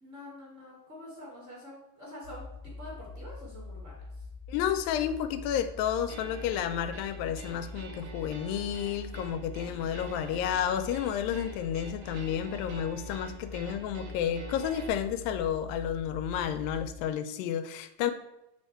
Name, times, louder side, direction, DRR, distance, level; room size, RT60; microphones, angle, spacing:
voice 1, 0.0-4.3, left 1 dB, 25° right, -5 dB, 1.7 m, -47 dB
sound 1, 2.2-17.0, left 3 dB, 90° right, 3.6 m, -44 dB
voice 2, 4.5-18.1, left 9 dB, 85° left, 10 dB, 2.3 m, -31 dB
sound 2, 6.1-14.9, right 3 dB, 70° right, 2.2 m, -47 dB
8.8 x 3.5 x 4.4 m, 0.91 s
omnidirectional pair, 4.0 m